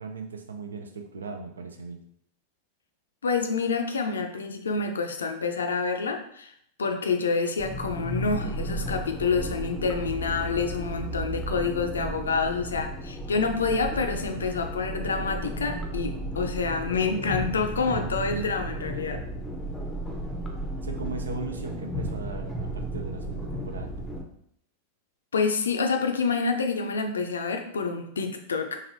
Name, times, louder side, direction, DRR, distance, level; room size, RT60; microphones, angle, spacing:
voice 1, 0.0-2.0 20.8-23.9, right 3 dB, 70° right, 5 dB, 0.5 m, -38 dB
voice 2, 3.2-6.5 6.8-19.2 25.3-28.8, left 4 dB, 70° left, 5 dB, 0.4 m, -28 dB
sound 1, 7.6-24.2, right 1 dB, 5° left, 0.6 m, -34 dB
4.0 x 2.6 x 2.8 m, 0.69 s
figure-of-eight pair, 90°, 0 cm